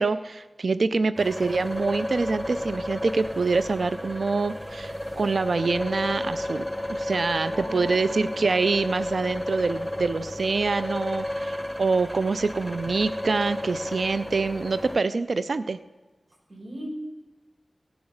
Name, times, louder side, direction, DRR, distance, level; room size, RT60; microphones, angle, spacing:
voice 1, 0.0-6.7 7.0-15.8, right 4 dB, 75° right, 13 dB, 0.4 m, -25 dB
sound 1, 1.2-15.0, left 1 dB, ahead, 0.8 m, -32 dB
voice 2, 7.5-8.2 16.5-16.9, equal, 60° right, -3 dB, 5.3 m, -39 dB
16.5 x 7.1 x 6.4 m, 1.2 s
wide cardioid pair, 60°, 0 cm